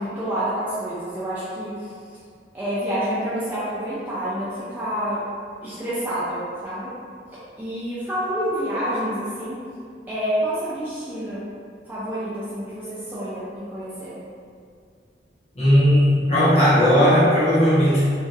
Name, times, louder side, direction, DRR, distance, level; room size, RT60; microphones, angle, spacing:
voice 1, 0.0-1.9 2.5-5.2 5.6-6.9 7.3-9.6 10.1-11.5 11.9-14.2, equal, 10° right, -11 dB, 0.4 m, -28 dB
voice 2, 15.6-18.0, equal, 35° left, -11 dB, 0.9 m, -16 dB
2.9 x 2.5 x 2.5 m, 2.2 s
head